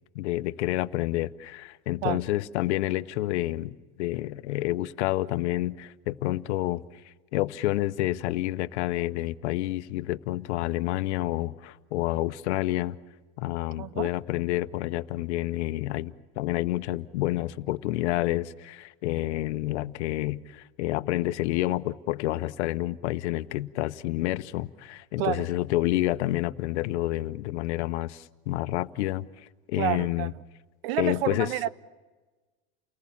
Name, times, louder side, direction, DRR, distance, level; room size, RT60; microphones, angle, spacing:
voice 1, 0.1-6.8 7.3-13.0 13.4-29.3 29.7-30.3 31.0-31.5, left 16 dB, 90° left, 0.9 m, -29 dB
voice 2, 13.8-14.1 25.2-25.5 29.8-30.3 30.8-31.7, right 13 dB, 65° right, 0.8 m, -29 dB
29.5 x 19.5 x 7.3 m
supercardioid pair, 170°, 33 cm